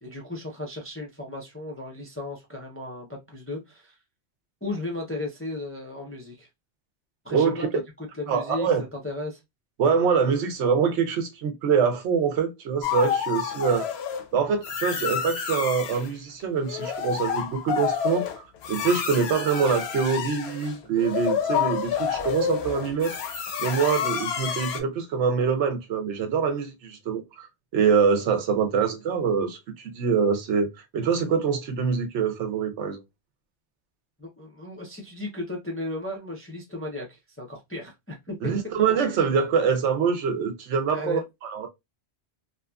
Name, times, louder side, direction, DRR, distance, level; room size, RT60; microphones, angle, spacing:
voice 1, 0.0-4.0 4.6-6.5 7.2-9.4 34.2-38.6 40.9-41.2, left 2 dB, 20° left, 0.4 m, -35 dB
voice 2, 7.3-7.7 8.3-8.8 9.8-13.9 14.3-23.2 23.6-33.0 38.4-41.7, right 6 dB, 90° right, 1.0 m, -25 dB
sound 1, 12.8-14.2 14.6-16.1 16.6-24.8, left 8 dB, 70° left, 0.8 m, -29 dB
2.8 x 2.4 x 2.2 m
omnidirectional pair, 1.2 m